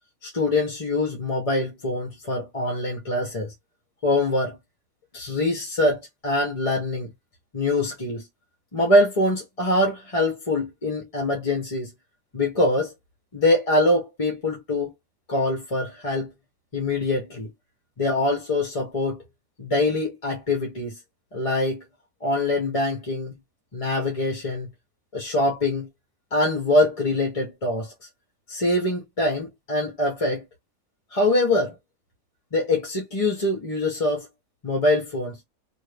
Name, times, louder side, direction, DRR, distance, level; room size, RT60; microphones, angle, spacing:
voice 1, 0.2-3.5 4.0-4.6 5.1-7.1 7.5-8.3 8.7-11.9 12.3-12.9 13.3-14.9 15.3-16.3 16.7-17.5 18.0-19.2 19.6-21.0 21.3-21.8 22.2-23.4 23.7-24.7 25.1-25.9 26.3-27.9 28.5-30.5 31.1-31.7 32.5-34.3 34.6-35.4, left 1 dB, 30° left, 0.8 m, -24 dB
2.7 x 2.6 x 3.3 m
omnidirectional pair, 1.5 m